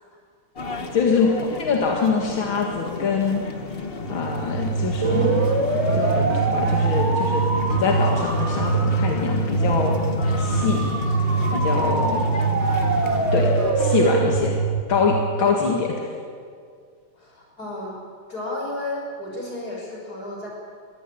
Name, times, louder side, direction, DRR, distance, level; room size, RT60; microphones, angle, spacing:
sound 1, 0.6-13.7, left 5 dB, 35° left, 1.3 m, -32 dB
voice 1, 0.9-1.3 1.6-3.4 4.1-5.5 5.8-7.4 7.7-9.9 10.4-10.9 11.5-12.2 13.3-14.6 14.9-16.1, left 5 dB, 85° left, 0 dB, 2.8 m, -24 dB
sound 2, 4.0-15.8, right 4 dB, 35° right, 2.7 m, -23 dB
voice 2, 17.2-17.9 18.3-20.5, left 1 dB, 50° left, -2 dB, 6.5 m, -32 dB
22.5 x 16.0 x 8.7 m, 2.1 s
omnidirectional pair, 2.1 m